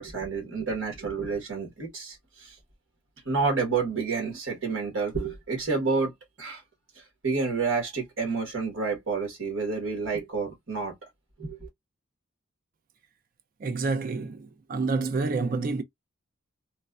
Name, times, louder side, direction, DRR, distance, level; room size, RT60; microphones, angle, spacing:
voice 1, 0.0-2.6 3.2-6.1 6.4-6.6 7.0-10.9 11.4-11.7, right 4 dB, 60° right, 1.2 m, -29 dB
voice 2, 13.6-15.8, right 3 dB, 40° right, 0.3 m, -28 dB
3.2 x 2.2 x 2.3 m
head